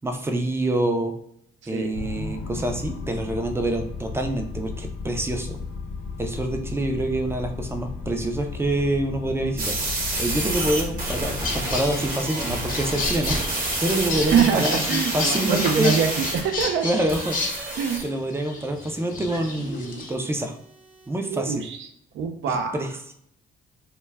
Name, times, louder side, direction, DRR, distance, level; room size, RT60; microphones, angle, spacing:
voice 1, 0.0-1.1 1.7-5.6 6.2-9.7 10.2-16.0 16.8-17.4 18.0-20.6 21.1-21.7 22.5-23.1, right 1 dB, 10° right, 4 dB, 0.4 m, -26 dB
sound 1, 1.9-16.4, left 4 dB, 85° left, 0.6 m, -36 dB
sound 2, 9.6-16.6 17.1-18.0, right 2 dB, 45° right, 0.9 m, -29 dB
sound 3, 11.4-20.1, left 3 dB, 45° left, 0.7 m, -32 dB
voice 2, 14.3-16.9 17.8-18.0 21.3-21.9 22.1-22.8, right 7 dB, 70° right, 6 dB, 0.5 m, -24 dB
2.2 x 2.1 x 3.3 m, 0.70 s
cardioid pair, 90°, 20 cm